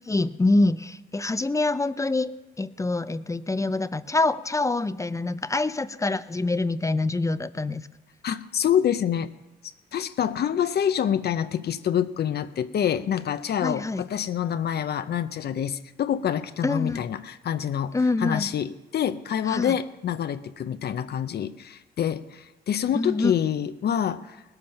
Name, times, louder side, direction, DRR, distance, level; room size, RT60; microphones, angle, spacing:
voice 1, 0.1-7.8 13.6-14.0 16.6-17.0 17.9-18.5 19.5-19.7 22.9-23.3, left 2 dB, 15° left, 13 dB, 0.5 m, -25 dB
voice 2, 8.2-9.3 9.9-24.4, left 9 dB, 55° left, 10 dB, 0.6 m, -26 dB
18.5 x 7.7 x 5.8 m, 1.0 s
cardioid pair, 90°, 20 cm